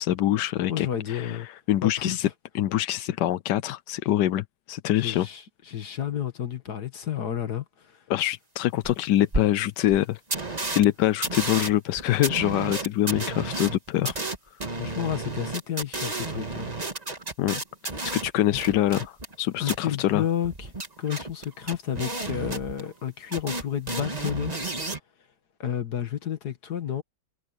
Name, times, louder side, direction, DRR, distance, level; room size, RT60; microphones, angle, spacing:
voice 1, 0.0-2.3 2.5-5.3 8.1-10.2 10.7-14.1 17.4-17.6 18.0-20.2, left 13 dB, 90° left, 1.3 m, -25 dB
voice 2, 0.7-1.5 1.8-2.2 5.0-8.0 10.5-10.7 14.0-14.1 14.8-16.7 18.5-18.6 19.6-20.7 21.0-24.5 25.6-27.0, left 9 dB, 70° left, 2.2 m, -31 dB
sound 1, 8.8-8.9 9.3-9.4 9.9-10.0 10.3-10.8 11.2-19.4 19.6-19.8 20.4-23.1 23.3-25.0, right 2 dB, 25° right, 2.0 m, -32 dB
omnidirectional pair, 1.8 m